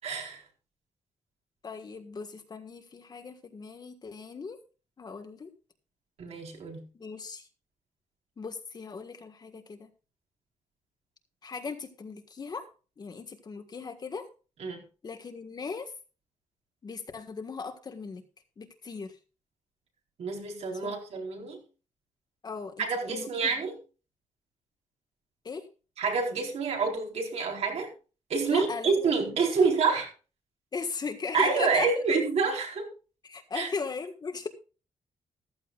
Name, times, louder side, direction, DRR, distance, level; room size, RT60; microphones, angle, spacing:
voice 1, 0.0-0.4 6.2-6.8 14.6-14.8 20.2-21.6 22.8-23.8 26.0-27.9 28.3-30.1 31.3-32.9 33.5-33.7, right 4 dB, 60° right, 1 dB, 4.3 m, -27 dB
voice 2, 1.6-4.6 5.0-5.5 6.9-7.5 8.4-9.9 11.4-12.6 13.0-14.3 15.0-15.9 16.8-18.2 18.6-19.1 20.8-21.0 22.4-23.5 25.4-25.7 28.5-29.2 29.6-29.7 30.7-31.9 33.2-34.5, left 4 dB, 35° left, 7 dB, 1.6 m, -38 dB
14.5 x 14.5 x 2.4 m, 0.34 s
wide cardioid pair, 150°, 12 cm